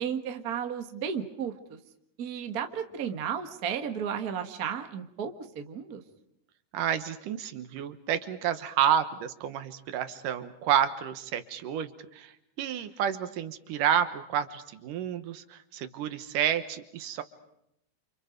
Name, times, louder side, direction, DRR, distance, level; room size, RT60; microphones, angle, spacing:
voice 1, 0.0-1.8 2.2-6.0, right 8 dB, 40° right, 5 dB, 1.4 m, -33 dB
voice 2, 6.7-12.3 12.6-17.2, right 9 dB, 75° right, 10 dB, 2.7 m, -30 dB
29.0 x 28.0 x 5.2 m, 0.78 s
omnidirectional pair, 3.9 m